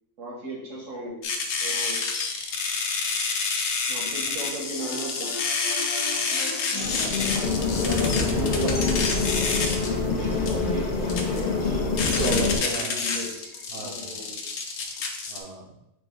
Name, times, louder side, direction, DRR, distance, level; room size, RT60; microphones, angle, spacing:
voice 1, 0.2-1.2 1.6-2.0 3.9-5.3 8.2-9.4 10.0-14.3, right 1 dB, 75° right, -3 dB, 1.6 m, -36 dB
sound 1, 1.2-15.4, left 4 dB, 85° left, 1.0 m, -29 dB
sound 2, 4.8-11.6, left 4 dB, 65° left, 1.3 m, -37 dB
sound 3, 6.8-12.6, left 4 dB, 45° left, 0.6 m, -26 dB
voice 2, 6.8-7.3 7.8-8.7 12.0-13.2 13.7-14.2 15.3-15.7, right 3 dB, 55° right, 2 dB, 0.8 m, -35 dB
4.8 x 2.5 x 3.8 m, 0.86 s
omnidirectional pair, 1.3 m